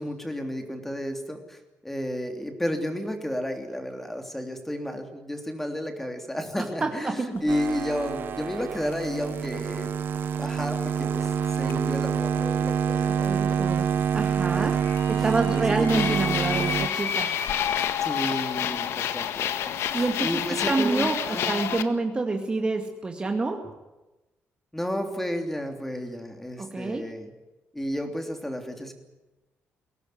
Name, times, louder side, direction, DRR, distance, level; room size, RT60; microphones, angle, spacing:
voice 1, 0.0-9.9 10.4-11.3 11.6-13.6 14.5-14.8 15.5-16.2 18.0-21.6 24.7-27.3 27.7-28.9, equal, 5° left, 5 dB, 3.2 m, -32 dB
voice 2, 6.5-7.4 13.1-17.3 19.9-23.7 26.6-27.1, right 3 dB, 20° right, 4 dB, 2.1 m, -28 dB
sound 1, 7.4-7.5 8.8-9.3 11.4-12.4 12.7-17.9, left 6 dB, 55° left, 2.5 m, -35 dB
sound 2, 7.5-16.9, right 8 dB, 50° right, 1.0 m, -27 dB
sound 3, 15.9-21.8, left 10 dB, 75° left, 1.7 m, -29 dB
23.0 x 18.0 x 9.6 m, 1.1 s
cardioid pair, 145°, 4 cm